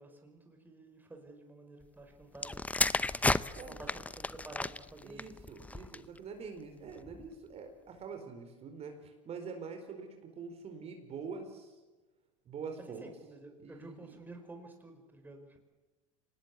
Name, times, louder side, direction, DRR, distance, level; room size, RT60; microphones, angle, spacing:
voice 1, 0.0-2.6 3.7-5.4 13.0-15.6, right 2 dB, 10° right, 4 dB, 5.1 m, -51 dB
sound 1, 2.3-6.2 7.0-7.2, left 2 dB, 10° left, 0.7 m, -33 dB
voice 2, 5.0-11.7 12.4-13.1 13.6-14.2, right 5 dB, 35° right, 5 dB, 4.5 m, -45 dB
25.5 x 19.5 x 8.3 m, 1.2 s
hypercardioid pair, 90°, 17 cm